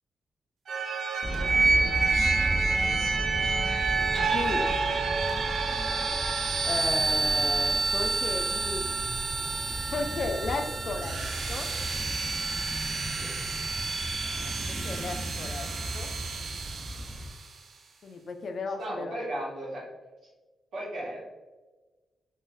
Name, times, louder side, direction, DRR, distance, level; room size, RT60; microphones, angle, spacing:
sound 1, 0.7-17.4, right 4 dB, 70° right, 0.4 m, -29 dB
sound 2, 1.2-17.3, right 1 dB, 5° right, 0.4 m, -36 dB
voice 1, 1.6-2.5 2.8-3.0 4.2-4.7 6.6-8.9 9.9-11.7 14.4-16.1 18.0-19.2, left 3 dB, 60° left, 6 dB, 0.4 m, -35 dB
voice 2, 18.8-19.8 20.7-21.2, right 1 dB, 90° right, -6 dB, 1.4 m, -35 dB
3.8 x 2.5 x 2.6 m, 1.2 s
cardioid pair, 85°, 0 cm